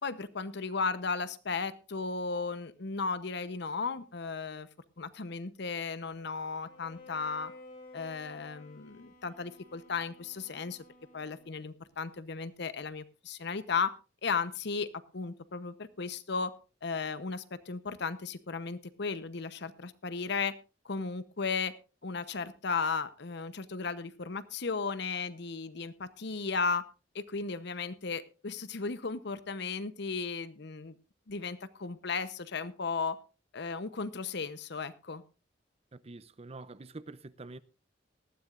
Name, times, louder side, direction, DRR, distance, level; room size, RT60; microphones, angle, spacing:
voice 1, 0.0-4.7 5.0-7.5 7.9-10.8 11.1-13.9 14.2-14.9 15.1-16.5 16.8-20.5 20.8-21.7 22.0-26.8 27.1-30.9 31.3-33.2 33.5-35.2, left 4 dB, 65° left, 0.9 m, -35 dB
Bowed string instrument, 6.6-11.7, left 3 dB, 50° left, 3.3 m, -54 dB
voice 2, 35.9-37.6, right 3 dB, 35° right, 0.6 m, -46 dB
19.0 x 13.0 x 2.5 m
head